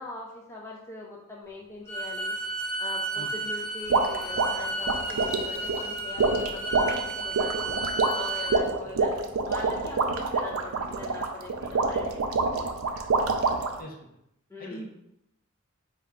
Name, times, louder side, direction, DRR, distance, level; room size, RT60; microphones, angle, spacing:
voice 1, 0.0-2.3 2.8-7.8 8.1-9.1 9.5-13.1 14.5-14.8, left 2 dB, 15° left, -3 dB, 0.4 m, -42 dB
Bowed string instrument, 1.9-8.6, right 2 dB, 25° right, 1.4 m, -33 dB
sound 1, 3.9-13.8, right 3 dB, 80° right, 0.4 m, -27 dB
voice 2, 14.6-14.9, right 1 dB, 45° left, 0 dB, 0.8 m, -41 dB
4.3 x 2.3 x 3.6 m, 0.80 s
head